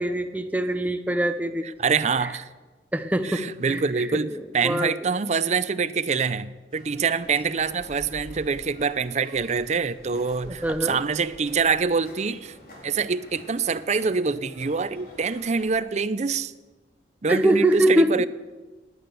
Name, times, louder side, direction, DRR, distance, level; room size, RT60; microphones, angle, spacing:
voice 1, 0.0-1.7 2.9-5.1 10.4-11.0 17.3-18.1, right 1 dB, 10° right, 0.7 m, -24 dB
voice 2, 1.6-2.5 3.2-12.6 12.8-16.5 17.2-18.3, right 5 dB, 40° right, 0.5 m, -25 dB
fronton y musica en el clot, 6.7-15.6, equal, 55° left, 4.0 m, -47 dB
18.0 x 9.5 x 6.8 m
head